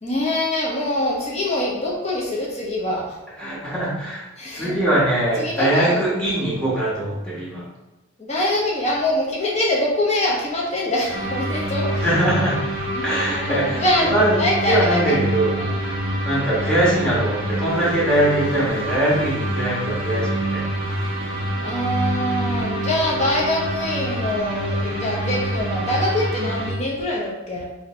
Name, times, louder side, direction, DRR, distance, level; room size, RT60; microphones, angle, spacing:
voice 1, 0.0-3.2 4.4-4.8 5.4-6.0 6.3-6.5 8.2-12.1 12.9-15.2 15.6-15.7 16.6-16.7 21.6-27.6, left 1 dB, 30° left, -3 dB, 0.9 m, -24 dB
voice 2, 3.4-4.2 4.5-7.7 12.0-12.6 13.0-14.4 14.7-20.7, right 1 dB, 5° left, -8 dB, 1.3 m, -22 dB
sound 1, 11.1-26.7, right 1 dB, 25° right, 1.0 m, -26 dB
3.7 x 2.8 x 4.4 m, 1.1 s
head